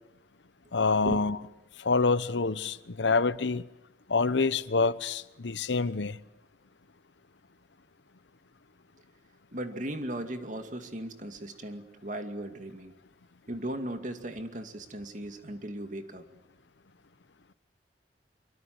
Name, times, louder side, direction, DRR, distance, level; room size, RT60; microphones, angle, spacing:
voice 1, 0.7-1.4 1.8-3.6 4.1-6.2, left 4 dB, 80° left, 0.8 m, -26 dB
voice 2, 9.5-12.9 13.5-16.3, right 1 dB, 45° right, 2.3 m, -37 dB
24.5 x 24.0 x 7.9 m
head